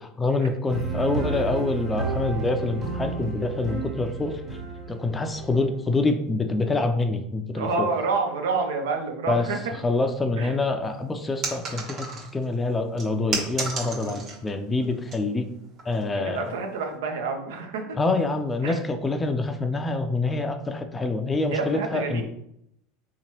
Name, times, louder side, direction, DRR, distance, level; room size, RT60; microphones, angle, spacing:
voice 1, 0.2-4.4 4.9-7.9 9.3-9.5 9.8-12.1 12.3-15.5 15.9-16.4 18.0-22.2, left 3 dB, 15° left, 7 dB, 0.4 m, -26 dB
sound 1, 0.7-5.9, right 4 dB, 25° right, 1.5 m, -32 dB
voice 2, 7.5-9.6 10.4-10.5 14.1-14.2 16.2-18.0 18.6-18.8 21.5-22.2, right 4 dB, 85° right, 4 dB, 0.6 m, -28 dB
sound 2, 11.4-12.5 13.0-14.5 14.8-15.2 15.8-16.0, right 3 dB, 45° right, 1.0 m, -32 dB
3.6 x 2.9 x 2.9 m, 0.76 s
supercardioid pair, 110°, 0 cm